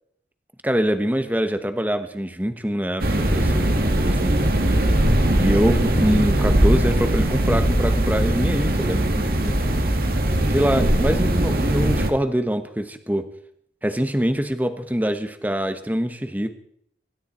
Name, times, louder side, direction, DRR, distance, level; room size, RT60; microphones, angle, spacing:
voice 1, 0.6-3.1 3.3-3.7 4.0-4.5 5.4-9.5 10.5-13.3 13.8-16.5, equal, 10° right, 8 dB, 1.1 m, -24 dB
sound 1, 3.0-12.1, right 1 dB, 55° right, 1.9 m, -20 dB
25.5 x 13.0 x 4.4 m, 0.70 s
head